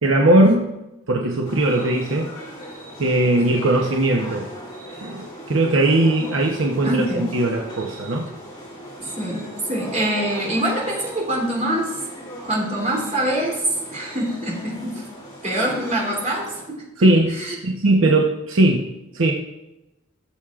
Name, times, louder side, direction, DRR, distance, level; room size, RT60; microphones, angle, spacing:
voice 1, 0.0-0.7 1.1-2.3 3.0-4.5 5.0-8.3 17.0-17.3 17.6-18.9 19.1-19.3, right 2 dB, 70° right, 0 dB, 0.9 m, -19 dB
sound 1, 1.4-16.7, equal, 20° left, 2.8 m, -38 dB
voice 2, 6.8-7.3 9.0-11.9 12.4-13.6 13.9-15.0 15.4-16.8 17.4-17.5, right 1 dB, 35° right, -3 dB, 3.1 m, -25 dB
17.0 x 7.3 x 2.4 m, 0.97 s
head